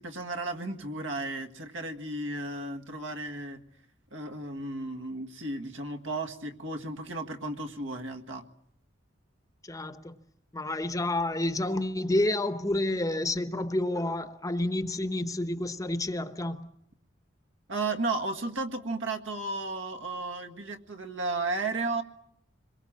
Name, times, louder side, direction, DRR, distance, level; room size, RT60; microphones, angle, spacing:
voice 1, 0.0-3.6 4.1-8.4 17.7-22.0, right 2 dB, 75° right, 1.8 m, -34 dB
voice 2, 9.6-10.2 10.5-16.7, left 1 dB, 15° left, 0.9 m, -29 dB
26.0 x 22.5 x 7.4 m
head